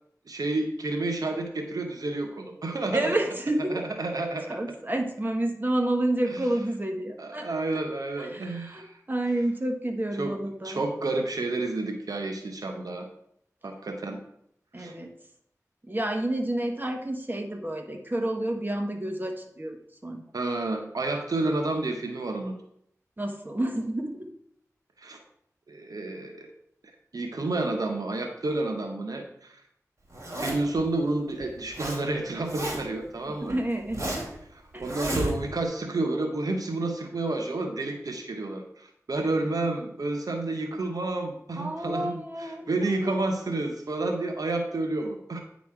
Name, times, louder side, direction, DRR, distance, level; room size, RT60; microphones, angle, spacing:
voice 1, 0.3-3.1 3.7-4.6 6.3-6.4 7.2-9.0 10.2-10.4 10.6-13.0 13.6-14.2 14.8-15.0 20.3-22.6 25.0-25.2 25.7-26.5 27.1-29.6 30.4-33.6 34.5-45.4, right 2 dB, 90° right, 4 dB, 0.8 m, -30 dB
voice 2, 2.9-3.8 4.5-7.8 8.2-10.8 14.7-15.1 15.8-20.2 23.2-24.3 33.5-34.2 34.7-34.8 41.6-43.2, right 1 dB, 30° right, 3 dB, 1.3 m, -29 dB
Zipper (clothing), 30.1-30.8 31.4-32.0 32.3-33.0 33.5-34.4 34.8-35.7, right 1 dB, 55° right, 2.6 m, -32 dB
9.4 x 4.1 x 4.7 m, 0.70 s
wide cardioid pair, 45°, 6 cm